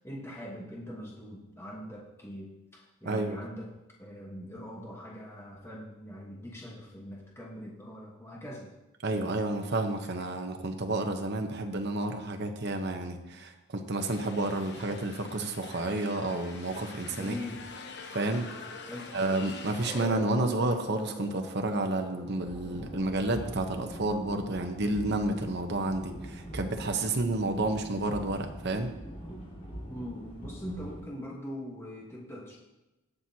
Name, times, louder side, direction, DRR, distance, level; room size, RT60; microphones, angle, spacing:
voice 1, 0.0-3.7 4.0-8.7 13.3-13.4 17.1-17.7 18.9-19.2 29.9-32.6, equal, 10° left, -3 dB, 1.3 m, -42 dB
voice 2, 3.0-3.4 9.0-17.3 18.1-18.5 19.1-28.9, right 2 dB, 50° right, 5 dB, 1.0 m, -30 dB
sound 1, 14.0-20.1, left 4 dB, 50° left, 0.9 m, -46 dB
sound 2, 17.6-28.6, equal, 20° right, 3.4 m, -48 dB
sound 3, 22.4-31.0, equal, 30° left, 3.4 m, -43 dB
18.0 x 6.1 x 2.9 m, 1.0 s
head